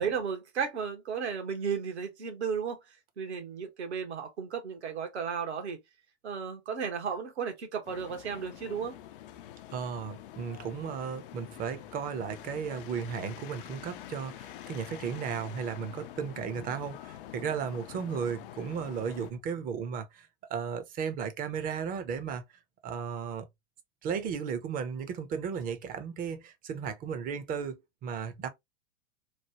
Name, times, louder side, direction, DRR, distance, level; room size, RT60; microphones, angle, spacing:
voice 1, 0.0-2.8 3.2-5.8 6.2-8.9 16.6-17.0, right 6 dB, 70° right, 1.2 m, -34 dB
sound 1, 7.8-19.3, left 12 dB, 50° left, 0.5 m, -46 dB
voice 2, 9.7-22.4 22.8-23.5 24.0-28.5, right 6 dB, 25° right, 0.6 m, -35 dB
3.2 x 2.2 x 2.7 m
figure-of-eight pair, 100°, 34 cm